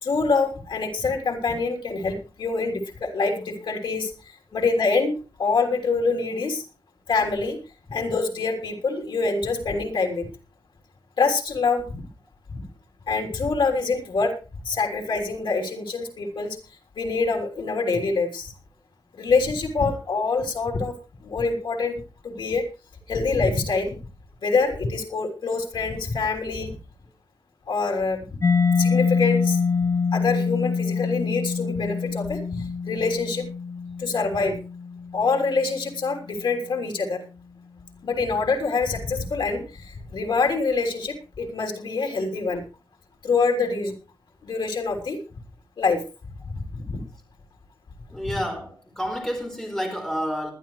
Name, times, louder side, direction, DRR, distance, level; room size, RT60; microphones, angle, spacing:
voice 1, 0.0-6.7 7.1-7.6 7.9-10.3 11.2-12.0 12.5-12.7 13.1-14.3 14.6-16.6 16.9-18.5 19.1-20.9 21.2-22.6 23.1-24.0 24.4-26.8 27.7-28.2 28.8-29.6 30.1-33.5 34.0-34.6 35.1-37.2 38.0-42.6 43.2-43.9 44.4-45.2 45.8-46.0 46.4-47.0, left 4 dB, 85° left, 4 dB, 3.4 m, -25 dB
Mallet percussion, 28.4-35.9, left 5 dB, 40° left, 0.7 m, -25 dB
voice 2, 48.1-50.5, equal, 5° left, 2 dB, 4.5 m, -29 dB
20.0 x 12.0 x 3.2 m, 0.33 s
wide cardioid pair, 150°, 8 cm